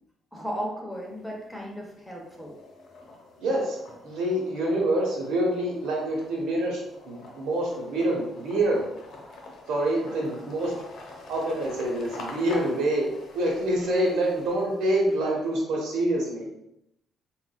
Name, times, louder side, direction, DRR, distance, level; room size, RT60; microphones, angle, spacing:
voice 1, 0.3-2.6, equal, ahead, -2 dB, 0.9 m, -35 dB
sound 1, 0.9-1.6 2.0-15.5, left 2 dB, 65° left, 0.8 m, -46 dB
voice 2, 3.4-3.8 4.0-8.8 9.7-10.7 11.3-13.1 13.3-16.6, right 1 dB, 85° right, -2 dB, 1.0 m, -26 dB
3.9 x 2.4 x 2.2 m, 0.82 s
cardioid pair, 90°, 0 cm